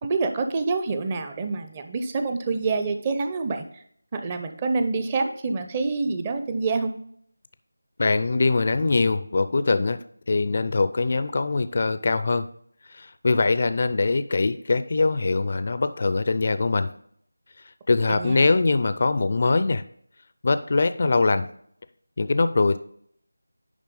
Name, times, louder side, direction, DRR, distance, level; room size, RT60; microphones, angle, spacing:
voice 1, 0.0-3.6 4.1-6.9 18.1-18.5, right 3 dB, 20° right, 6 dB, 0.6 m, -26 dB
voice 2, 8.0-10.0 10.3-12.5 12.9-16.9 17.9-19.8 20.4-21.5 22.2-22.8, left 3 dB, 40° left, 12 dB, 0.4 m, -22 dB
10.5 x 3.5 x 5.3 m, 0.65 s
figure-of-eight pair, 170°, 0 cm